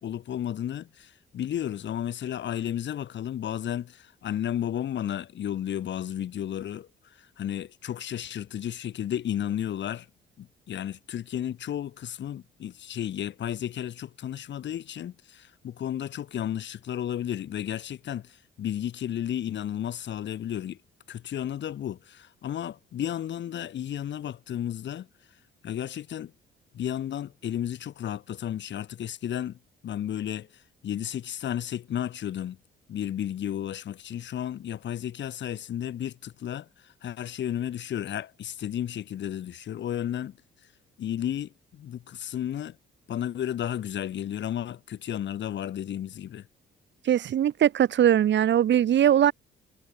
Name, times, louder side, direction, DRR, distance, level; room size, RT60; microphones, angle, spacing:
voice 1, 0.0-10.1 10.4-20.8 21.1-25.1 25.6-26.3 26.7-32.6 32.9-40.4 41.0-42.8 43.1-46.5, left 10 dB, 65° left, 2.4 m, -33 dB
voice 2, 47.0-49.3, right 10 dB, 65° right, 2.7 m, -21 dB
cardioid pair, 90°, 20 cm